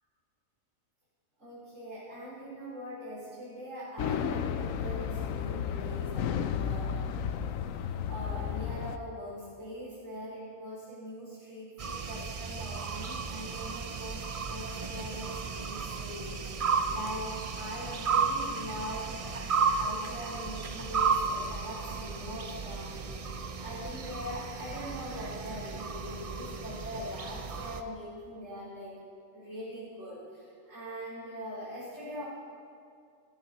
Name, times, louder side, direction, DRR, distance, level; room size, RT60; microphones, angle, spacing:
voice 1, 1.4-6.9 8.1-19.4 19.7-28.9 29.3-32.2, equal, 70° right, -10 dB, 5.1 m, -42 dB
sound 1, 4.0-9.0, left 8 dB, 85° left, 1.0 m, -33 dB
sound 2, 11.8-27.8, right 5 dB, 45° right, 0.5 m, -34 dB
17.5 x 14.0 x 4.2 m, 2.3 s
omnidirectional pair, 1.3 m